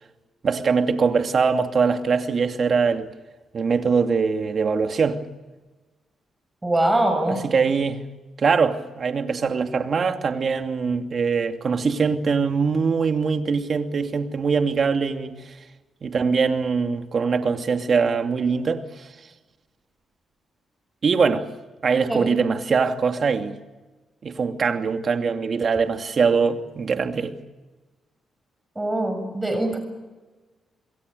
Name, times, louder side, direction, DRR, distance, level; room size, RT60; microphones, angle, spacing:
voice 1, 0.4-3.1 3.5-5.2 7.3-8.0 8.4-15.4 16.0-19.1 21.0-21.5 21.8-23.6 24.2-27.3, right 5 dB, 50° right, 2.7 m, -22 dB
voice 2, 6.6-7.4 22.1-22.4 28.8-29.8, right 1 dB, 15° right, 7.1 m, -23 dB
27.5 x 22.5 x 6.8 m
cardioid pair, 80°, 0 cm